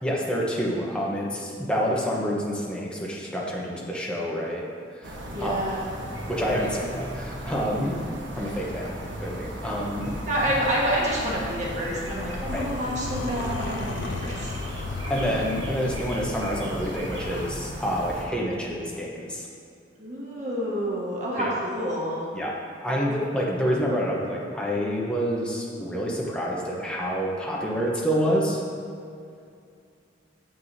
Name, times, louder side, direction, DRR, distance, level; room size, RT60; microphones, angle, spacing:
voice 1, 0.0-4.6 5.0-5.1 5.4-5.6 6.3-8.0 8.4-8.9 9.2-10.1 12.5-12.7 15.1-19.5 21.4-21.5 22.3-22.5 22.8-28.6, equal, 5° left, -4 dB, 0.9 m, -27 dB
sound 1, 5.0-18.3, equal, 75° right, 1.2 m, -37 dB
voice 2, 5.3-5.8 10.2-14.5 20.0-22.3, equal, 40° right, -5 dB, 1.5 m, -28 dB
sound 2, 10.0-17.5, left 3 dB, 60° left, 0.4 m, -36 dB
8.9 x 7.5 x 2.7 m, 2.3 s
head